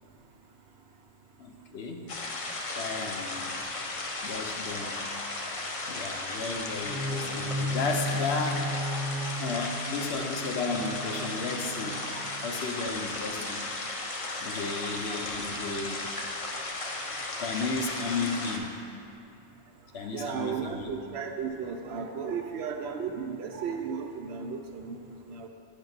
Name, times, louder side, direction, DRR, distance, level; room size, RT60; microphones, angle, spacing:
voice 1, 1.4-2.0 2.8-3.6 4.2-5.0 5.9-8.6 9.3-12.0 12.4-13.6 14.4-16.0 17.4-18.7 19.9-20.9, left 4 dB, 65° left, 3 dB, 0.9 m, -34 dB
sound 1, 2.1-18.6, left 2 dB, 40° left, 0.5 m, -35 dB
sound 2, 6.8-12.7, equal, ahead, 0.8 m, -35 dB
voice 2, 9.4-9.9 12.1-12.2 15.1-15.2 20.1-25.5, right 6 dB, 70° right, 4 dB, 0.8 m, -35 dB
9.0 x 5.4 x 4.0 m, 2.7 s
omnidirectional pair, 1.2 m